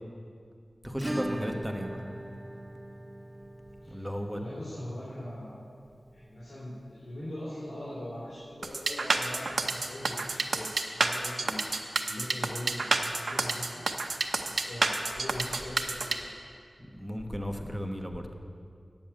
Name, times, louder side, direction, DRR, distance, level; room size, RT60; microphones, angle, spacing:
voice 1, 0.8-2.0 3.9-4.4 16.8-18.3, equal, 5° right, 3 dB, 1.2 m, -35 dB
Acoustic guitar / Strum, 1.0-9.6 9.9-10.0 10.3-10.4 10.7-10.8 12.9-13.0 14.1-14.2, right 1 dB, 20° right, 0.6 m, -42 dB
voice 2, 3.8-5.6 6.1-11.6 12.1-13.8 14.4-16.3, left 1 dB, 80° left, -10 dB, 3.1 m, -41 dB
sound 1, 8.6-16.2, right 3 dB, 80° right, 0.7 m, -29 dB
8.8 x 7.1 x 8.5 m, 2.2 s
wide cardioid pair, 50°, 0 cm